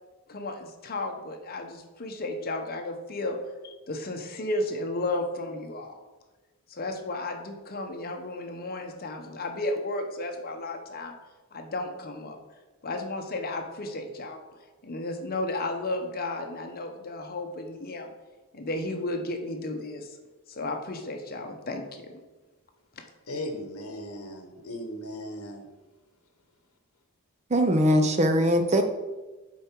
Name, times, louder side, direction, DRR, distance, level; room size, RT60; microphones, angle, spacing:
voice 1, 0.3-3.4 3.6-6.0 6.7-11.1 11.5-12.4 12.8-14.4 14.8-18.1 18.5-20.2 20.5-22.1, left 2 dB, 45° left, 4 dB, 0.9 m, -33 dB
voice 2, 23.3-25.7, left 1 dB, 70° left, 5 dB, 1.0 m, -37 dB
voice 3, 27.5-28.8, equal, 30° right, 7 dB, 0.6 m, -21 dB
7.2 x 4.7 x 4.5 m, 1.2 s
head